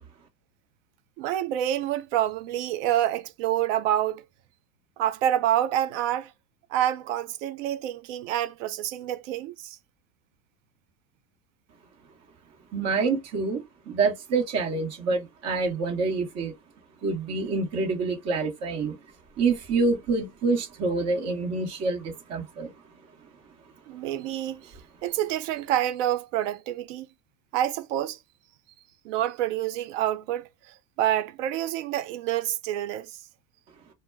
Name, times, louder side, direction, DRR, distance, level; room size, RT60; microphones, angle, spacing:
voice 1, 1.2-4.2 5.0-6.3 6.7-9.8 23.9-24.7 25.0-27.1 27.5-28.2 29.0-33.1, right 12 dB, 60° right, 0.5 m, -27 dB
voice 2, 12.7-16.5 17.0-19.0 19.4-22.7, right 4 dB, 35° right, 1.1 m, -27 dB
2.2 x 2.1 x 3.3 m
supercardioid pair, 115°, 42 cm